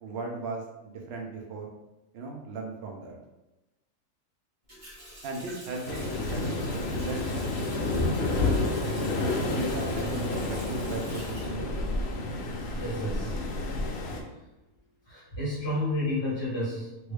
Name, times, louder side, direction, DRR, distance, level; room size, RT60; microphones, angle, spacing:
voice 1, 0.0-1.7 2.1-3.2 5.2-8.2 9.2-11.8, right 3 dB, 65° right, 1 dB, 0.7 m, -37 dB
Water tap faucet, 4.7-12.4 12.7-13.8, right 1 dB, 25° right, 1.3 m, -47 dB
Waves surf, 5.9-14.2, left 2 dB, 70° left, 0.6 m, -30 dB
voice 2, 12.8-13.5 13.9-14.4 15.0-17.1, left 1 dB, 25° left, -8 dB, 0.7 m, -32 dB
3.1 x 2.6 x 3.2 m, 1.0 s
omnidirectional pair, 1.6 m